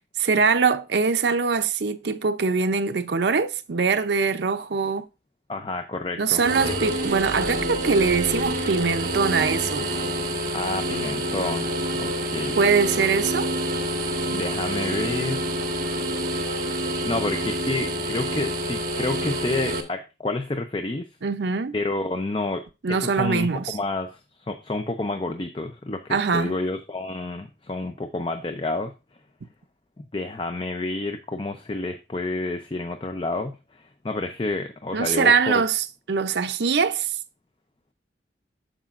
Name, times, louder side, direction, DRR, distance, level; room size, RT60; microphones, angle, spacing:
voice 1, 0.2-5.0 6.2-9.9 12.6-13.5 21.2-21.7 22.8-23.8 26.1-26.5 34.9-37.2, right 5 dB, 70° right, 0.6 m, -23 dB
voice 2, 5.5-6.7 10.5-11.7 12.0-12.6 14.3-15.6 17.0-21.1 21.7-22.6 22.9-24.2 24.5-28.9 30.0-35.6, left 2 dB, 30° left, 0.5 m, -29 dB
sound 1, 6.4-19.8, equal, 50° right, 1.4 m, -27 dB
13.0 x 5.0 x 2.5 m
head